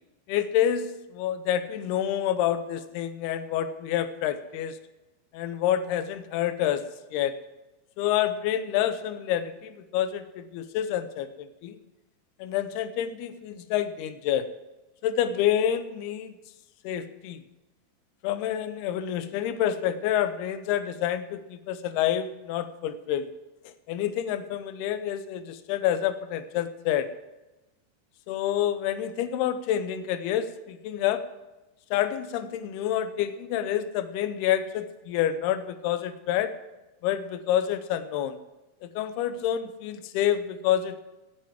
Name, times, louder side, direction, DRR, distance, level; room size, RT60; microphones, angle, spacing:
voice 1, 0.3-4.8 5.3-6.8 7.1-7.3 8.0-11.8 12.4-14.5 15.0-16.3 16.8-17.4 18.2-23.3 23.9-27.1 28.3-31.2 31.9-36.5 37.0-38.4 38.8-41.0, left 10 dB, 80° left, 11 dB, 2.4 m, -28 dB
18.0 x 7.0 x 7.4 m, 1.1 s
omnidirectional pair, 5.4 m